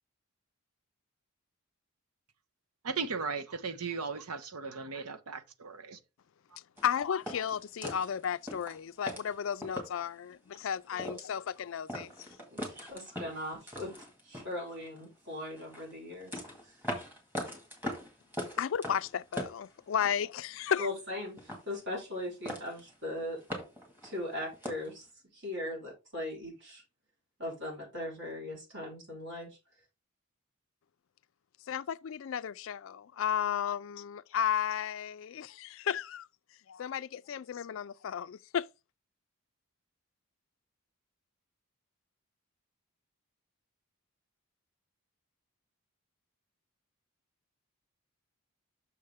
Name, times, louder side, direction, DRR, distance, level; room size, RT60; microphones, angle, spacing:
voice 1, 2.8-6.0, right 5 dB, 85° right, 0.9 m, -37 dB
voice 2, 6.8-12.1 18.6-20.9 31.7-36.3 36.7-38.7, left 8 dB, 60° left, 0.3 m, -33 dB
sound 1, 6.8-10.1 10.5-10.6 10.9-11.6 11.9-15.1 15.5-20.3 20.5-21.1 21.4-22.2 22.4-22.9 23.2-24.9, equal, 10° right, 1.9 m, -41 dB
voice 3, 12.5-13.9 14.2-16.7 20.8-23.4 24.0-25.1 25.3-26.8 27.4-29.5, left 1 dB, 55° right, 3.9 m, -39 dB
6.5 x 6.4 x 3.5 m
head